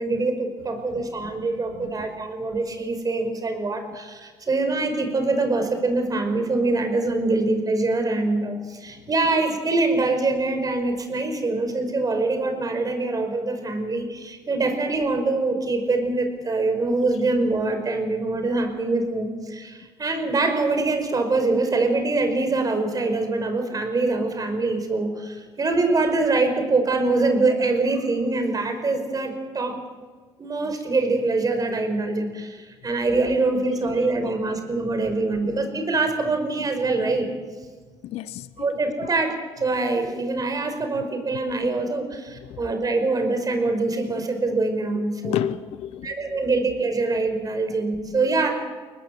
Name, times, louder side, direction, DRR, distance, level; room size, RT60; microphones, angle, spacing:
voice 1, 0.0-29.8 30.4-37.3 38.6-45.5 46.0-48.5, right 3 dB, 35° right, 6 dB, 5.5 m, -24 dB
voice 2, 38.0-38.7 42.5-42.6 45.2-46.4, left 11 dB, 75° left, 15 dB, 0.7 m, -30 dB
23.0 x 19.5 x 7.9 m, 1.4 s
supercardioid pair, 75°, 11 cm